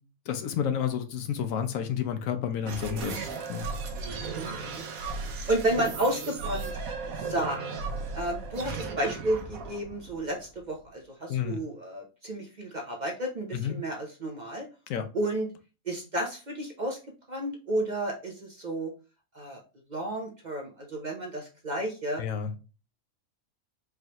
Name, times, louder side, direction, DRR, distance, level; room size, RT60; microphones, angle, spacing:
voice 1, 0.3-3.1 3.5-3.7 11.3-11.6 13.5-13.7 14.9-15.1 22.2-22.5, left 8 dB, 75° left, 1.1 m, -30 dB
sound 1, 2.6-10.9, right 4 dB, 80° right, 1.2 m, -36 dB
voice 2, 4.4-4.9 5.5-6.7 7.1-7.6 8.1-14.7 15.1-15.5 15.9-17.0 17.3-18.9 19.3-19.6 19.9-22.2, right 1 dB, 40° right, 0.7 m, -32 dB
4.7 x 3.2 x 2.9 m
omnidirectional pair, 1.4 m